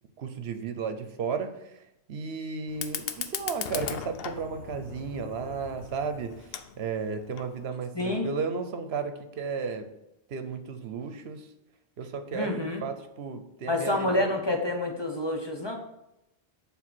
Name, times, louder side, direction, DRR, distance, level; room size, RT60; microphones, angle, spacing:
voice 1, 0.2-9.9 10.3-11.5 12.0-14.3, right 5 dB, 75° right, 8 dB, 0.9 m, -34 dB
Fire, 2.7-7.7, left 8 dB, 70° left, 0.8 m, -38 dB
voice 2, 7.9-8.3 12.3-12.8 13.7-15.8, left 1 dB, 25° left, 2 dB, 0.8 m, -28 dB
7.4 x 3.5 x 6.0 m, 0.87 s
omnidirectional pair, 1.1 m